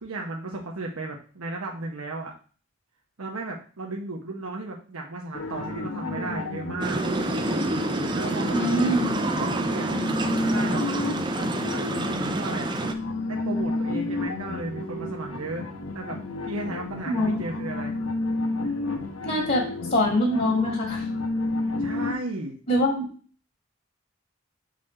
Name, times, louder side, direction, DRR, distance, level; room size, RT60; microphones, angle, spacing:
voice 1, 0.0-2.3 3.2-7.0 8.1-8.6 9.5-9.9 10.4-10.8 12.2-12.7 13.3-15.7 15.9-16.2 16.4-18.0 21.8-22.6, right 2 dB, 90° right, 0 dB, 0.9 m, -34 dB
sound 1, 5.3-22.1, left 2 dB, 85° left, 1.1 m, -31 dB
sound 2, 6.8-12.9, right 2 dB, 20° right, 0.5 m, -28 dB
sound 3, 7.0-14.5, left 1 dB, 45° right, 1.0 m, -37 dB
voice 2, 8.5-9.1 17.1-17.4 19.2-19.6 19.9-21.0 22.7-23.0, left 1 dB, 40° left, -2 dB, 1.6 m, -23 dB
6.4 x 4.1 x 4.3 m, 0.40 s
head